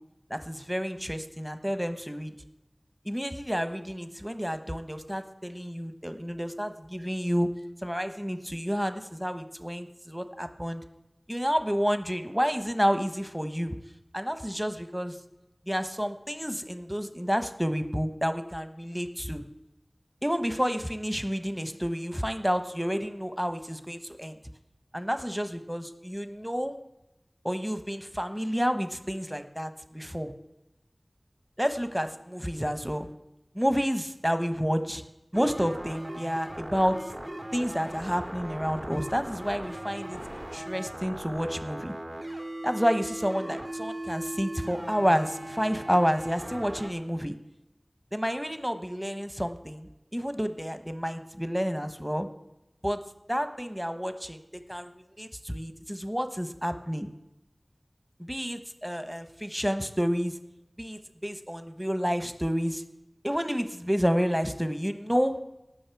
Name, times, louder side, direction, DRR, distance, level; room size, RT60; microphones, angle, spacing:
voice 1, 0.3-2.3 3.0-7.5 7.8-10.8 11.3-13.8 14.1-15.2 15.7-19.4 20.2-24.3 24.9-26.7 27.4-30.3 31.6-33.1 33.5-35.0 35.3-37.1 37.5-41.9 42.6-47.3 48.1-52.3 52.8-53.0 53.3-57.1 58.2-60.3 60.8-62.8 63.2-65.4, equal, 5° right, 9 dB, 1.1 m, -30 dB
sound 1, 35.3-46.9, right 1 dB, 45° right, 1.8 m, -38 dB
18.0 x 6.3 x 4.7 m, 0.93 s
wide cardioid pair, 40°, 0 cm